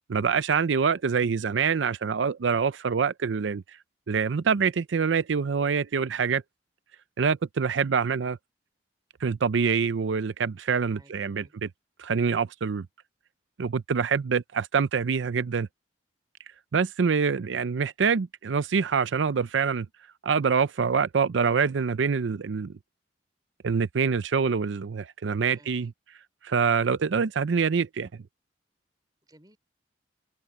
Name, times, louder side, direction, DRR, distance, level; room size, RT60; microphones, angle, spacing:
voice 1, 0.1-3.6 4.1-6.4 7.2-8.4 9.2-11.4 12.0-12.9 13.6-15.7 16.7-19.9 20.2-22.7 23.6-25.9 26.4-28.1, right 6 dB, 80° right, 0.5 m, -25 dB
voice 2, 10.9-11.5 25.5-25.9 29.2-29.6, right 1 dB, 20° right, 4.6 m, -57 dB
open air
head